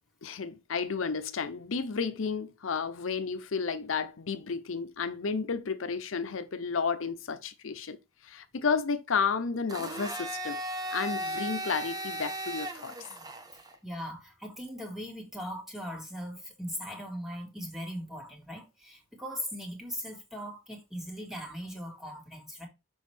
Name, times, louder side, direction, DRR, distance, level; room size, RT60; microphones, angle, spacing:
voice 1, 0.2-8.0 8.2-10.6 10.9-12.9, left 5 dB, 85° left, 0.7 m, -32 dB
Domestic sounds home sounds, 9.7-13.7, right 1 dB, 20° right, 0.9 m, -36 dB
voice 2, 13.8-22.7, equal, ahead, 2.0 m, -39 dB
6.3 x 5.1 x 3.3 m
head